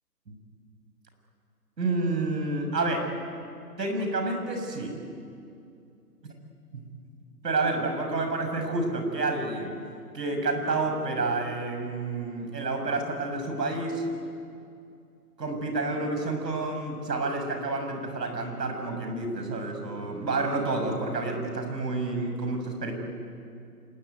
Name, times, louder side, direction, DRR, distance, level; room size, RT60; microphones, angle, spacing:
voice 1, 1.8-3.1 3.8-4.9 6.7-6.8 7.4-9.7 10.1-14.0 15.4-22.9, right 3 dB, 80° right, 4 dB, 7.1 m, -29 dB
27.5 x 21.5 x 9.4 m, 2.5 s
hypercardioid pair, 175°, 49 cm